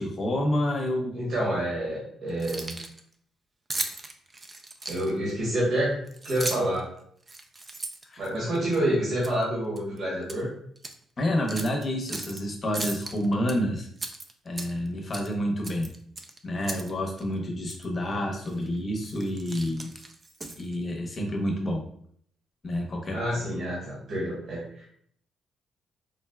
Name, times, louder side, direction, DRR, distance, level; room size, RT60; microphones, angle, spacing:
voice 1, 0.0-1.1 8.1-8.2 11.2-13.9 14.4-15.9 16.4-19.9 20.6-21.8 22.6-23.2, equal, 35° left, 1 dB, 0.7 m, -28 dB
voice 2, 1.1-2.8 4.9-6.0 6.2-6.9 8.2-10.5 23.1-24.9, right 1 dB, 60° right, -5 dB, 1.0 m, -28 dB
Keys jangling, 2.3-3.0 3.7-5.3 6.1-6.8 7.2-8.8 9.2-9.4 9.8-10.4 10.8-10.9 11.5-12.4 12.7-13.5 14.0-14.9 15.1-15.3 15.6-16.9 17.2-17.3 17.7-17.8 18.4-18.7 19.0-20.8, right 3 dB, 30° right, 0.4 m, -36 dB
3.7 x 2.2 x 2.2 m, 0.64 s
cardioid pair, 90°, 0 cm